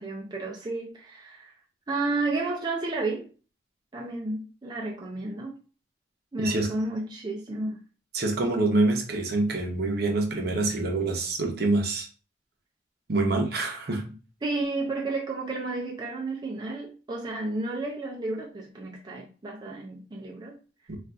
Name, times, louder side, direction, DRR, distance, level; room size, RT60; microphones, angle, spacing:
voice 1, 0.0-1.5 1.9-3.3 3.9-5.6 6.3-7.8 14.4-20.6, right 2 dB, 25° right, 0.4 m, -32 dB
voice 2, 8.1-12.1 13.1-14.1 20.9-21.0, right 2 dB, 55° right, 0.7 m, -26 dB
3.6 x 2.4 x 2.3 m
head